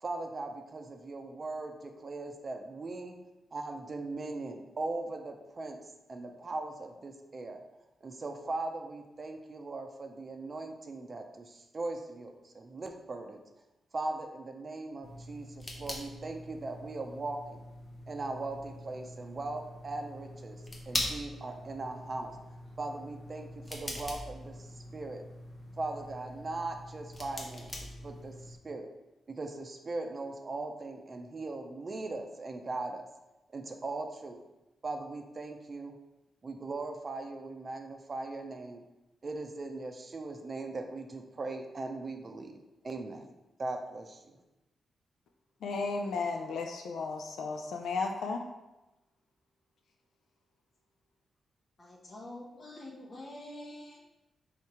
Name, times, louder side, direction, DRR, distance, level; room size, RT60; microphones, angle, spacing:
voice 1, 0.0-3.2 3.5-5.8 6.1-7.6 8.0-13.4 13.9-17.6 18.1-24.7 24.9-25.2 25.8-28.9 29.3-33.0 33.5-34.4 34.8-35.9 36.4-38.8 39.2-42.6 42.8-43.3 43.6-44.2, right 2 dB, 45° right, 5 dB, 0.6 m, -39 dB
sound 1, 15.0-28.6, left 1 dB, 35° left, 0.9 m, -43 dB
voice 2, 45.6-48.4, left 4 dB, 75° left, 3 dB, 0.3 m, -34 dB
voice 3, 51.8-54.0, left 1 dB, 50° left, -3 dB, 1.2 m, -46 dB
3.6 x 2.8 x 4.7 m, 0.99 s
supercardioid pair, 50°, 0 cm